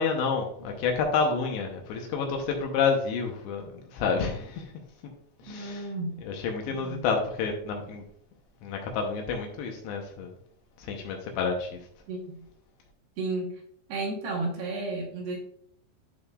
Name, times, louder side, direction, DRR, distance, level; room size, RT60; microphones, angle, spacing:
voice 1, 0.0-4.7 5.4-5.9 6.2-8.0 8.6-10.3 10.8-11.8, left 5 dB, 75° left, 2 dB, 2.9 m, -29 dB
voice 2, 5.5-6.2 6.7-7.0 12.1-12.5 13.2-13.6 13.9-15.4, right 2 dB, 70° right, -1 dB, 3.0 m, -33 dB
12.5 x 4.3 x 2.4 m, 0.65 s
omnidirectional pair, 5.5 m